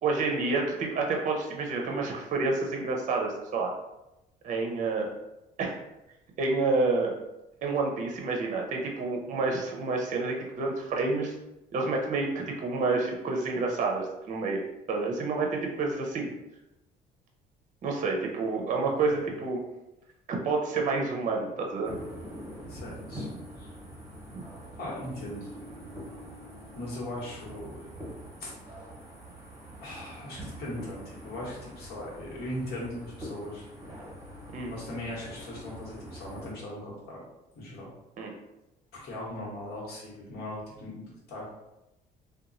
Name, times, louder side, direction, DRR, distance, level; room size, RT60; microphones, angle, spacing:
voice 1, 0.0-3.7 4.4-5.1 5.6-5.8 6.4-7.1 7.6-11.3 11.7-14.6 14.9-16.3 17.8-19.6 20.3-22.0 24.3-24.4 34.5-34.7 38.2-38.3, right 3 dB, 45° right, 1 dB, 0.5 m, -29 dB
voice 2, 18.8-19.3 22.7-23.3 23.6-23.7 24.8-25.6 26.7-27.9 28.4-28.5 28.8-28.9 29.8-33.7 34.7-37.2 37.5-37.9 38.9-41.5, left 1 dB, 70° left, -5 dB, 1.1 m, -39 dB
sound 1, 21.8-36.5, equal, 15° right, 0.9 m, -44 dB
2.8 x 2.2 x 2.5 m, 0.93 s
cardioid pair, 110°, 17 cm